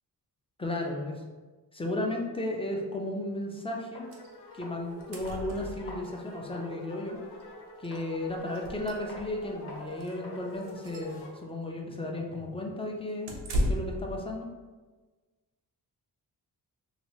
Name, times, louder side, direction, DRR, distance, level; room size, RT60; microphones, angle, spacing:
voice 1, 0.6-1.2 1.7-4.1 4.5-7.2 7.8-13.3 13.7-14.5, left 1 dB, 15° left, 0 dB, 0.6 m, -34 dB
sound 1, 3.9-4.1 4.6-4.9 5.2-6.8 7.1-7.3 7.9-8.1 8.5-8.8 9.1-9.3 9.7-9.9 10.2-10.4 10.7-12.7, left 1 dB, 30° left, 1.1 m, -49 dB
sound 2, 4.0-11.4, left 2 dB, 80° left, 0.6 m, -47 dB
sound 3, 4.1-4.3 4.6-4.7 4.9-6.1 7.4-7.5 7.8-8.0 8.5-9.4 9.9-10.1 10.6-11.1 13.3-14.1, equal, 85° right, 0.7 m, -34 dB
3.0 x 2.6 x 3.0 m, 1.3 s
cardioid pair, 70°, 40 cm